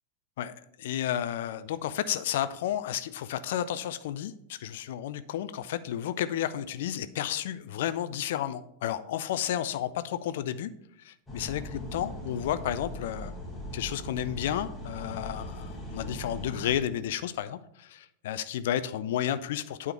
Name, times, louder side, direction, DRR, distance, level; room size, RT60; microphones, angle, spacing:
voice 1, 0.4-10.7 11.0-13.3 13.7-19.9, left 11 dB, 55° left, 13 dB, 0.3 m, -32 dB
sound 1, 11.3-16.8, left 1 dB, 10° left, 1.6 m, -39 dB
8.8 x 3.6 x 5.6 m, 0.74 s
figure-of-eight pair, 90°, 0 cm